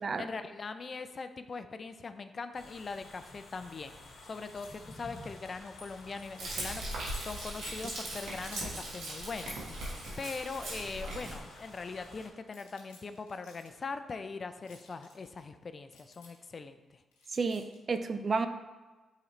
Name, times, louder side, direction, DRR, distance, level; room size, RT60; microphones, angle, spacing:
voice 1, 0.2-4.0 4.2-9.6 10.2-17.0, left 4 dB, 50° left, 10 dB, 0.4 m, -41 dB
sound 1, 2.5-12.3, left 2 dB, 70° left, 1.1 m, -52 dB
sound 2, 4.6-4.9 5.2-8.3 8.5-8.9 9.5-9.7 10.3-11.4 11.8-11.9 12.5-13.7 14.7-15.4 15.9-16.5 17.1-17.8, left 2 dB, 90° left, 1.0 m, -53 dB
Frying (food), 6.4-11.4, right 1 dB, 75° right, 1.5 m, -39 dB
voice 2, 17.3-18.5, right 4 dB, 50° right, 9 dB, 0.5 m, -31 dB
8.4 x 3.8 x 3.2 m, 1.2 s
hypercardioid pair, 45°, 0 cm